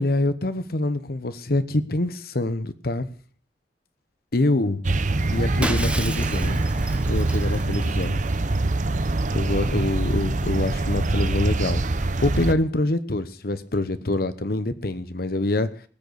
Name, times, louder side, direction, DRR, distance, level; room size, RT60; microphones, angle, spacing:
voice 1, 0.0-3.1 4.3-4.8 5.3-6.6 7.1-8.3 9.3-15.7, left 2 dB, 60° left, 13 dB, 1.0 m, -25 dB
sound 1, 4.8-12.5, right 2 dB, 45° right, 0.8 m, -24 dB
Shatter, 5.6-8.3, right 1 dB, 5° right, 1.0 m, -33 dB
19.5 x 6.7 x 6.9 m, 0.43 s
head